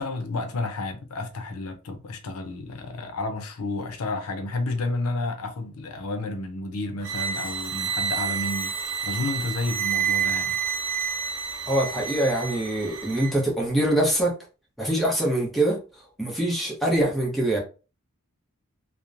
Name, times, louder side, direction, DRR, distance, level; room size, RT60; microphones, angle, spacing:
voice 1, 0.0-10.6, left 2 dB, 85° left, 0.5 m, -31 dB
sound 1, 7.0-13.4, right 7 dB, 60° right, 0.4 m, -29 dB
voice 2, 11.7-14.4 14.8-15.8 16.2-17.6, right 1 dB, ahead, 0.8 m, -24 dB
2.9 x 2.0 x 2.4 m
head